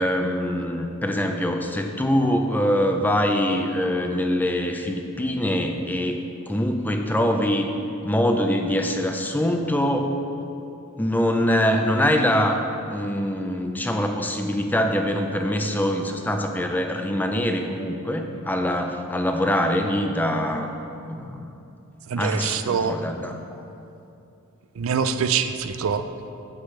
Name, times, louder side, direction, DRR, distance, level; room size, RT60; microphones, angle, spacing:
voice 1, 0.0-6.2 6.5-7.7 8.0-10.1 11.0-12.6 12.9-20.7 21.1-21.5 22.2-23.6, equal, 10° left, 4 dB, 0.5 m, -24 dB
voice 2, 22.1-23.0 24.8-26.0, right 6 dB, 65° right, 9 dB, 0.4 m, -24 dB
9.6 x 7.9 x 3.2 m, 2.7 s
head